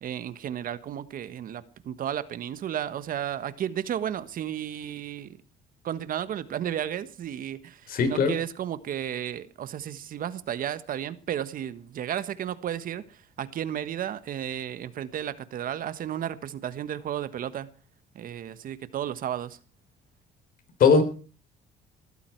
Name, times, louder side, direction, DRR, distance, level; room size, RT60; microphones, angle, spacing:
voice 1, 0.0-5.4 5.8-13.0 13.4-17.7 18.1-19.6, right 10 dB, 55° right, 13 dB, 1.4 m, -33 dB
voice 2, 7.9-8.4 20.8-21.0, left 5 dB, 60° left, 9 dB, 4.2 m, -19 dB
20.5 x 14.0 x 4.7 m, 0.38 s
cardioid pair, 110°, 17 cm